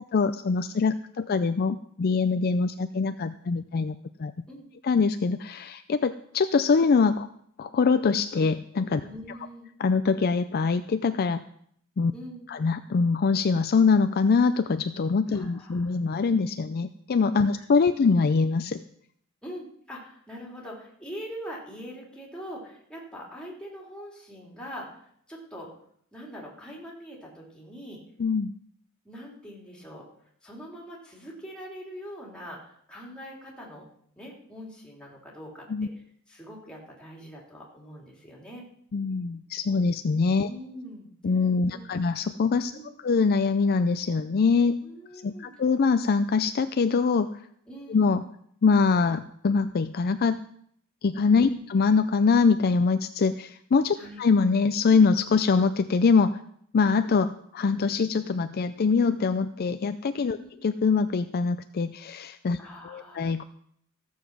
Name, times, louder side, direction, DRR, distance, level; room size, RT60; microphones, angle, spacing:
voice 1, 0.1-4.3 4.8-7.3 7.6-9.0 9.8-11.4 12.0-12.1 12.5-18.8 28.2-28.5 35.7-35.9 38.9-40.5 41.2-42.7 43.0-44.8 45.2-47.3 47.9-48.2 48.6-50.4 51.0-56.4 56.7-60.4 60.6-62.6 62.8-63.4, left 4 dB, 45° left, 10 dB, 0.4 m, -23 dB
voice 2, 9.0-9.7 12.1-12.5 15.3-16.0 17.5-17.6 19.4-25.0 25.3-25.7 26.1-28.0 29.0-30.1 30.4-33.9 34.2-35.9 36.3-38.7 40.4-41.1 41.7-42.1 42.7-43.1 44.8-45.5 47.7-48.1 51.4-51.6 54.0-54.2 60.3-60.5 62.6-63.2, equal, 5° left, -3 dB, 3.2 m, -43 dB
15.0 x 7.2 x 6.0 m, 0.67 s
head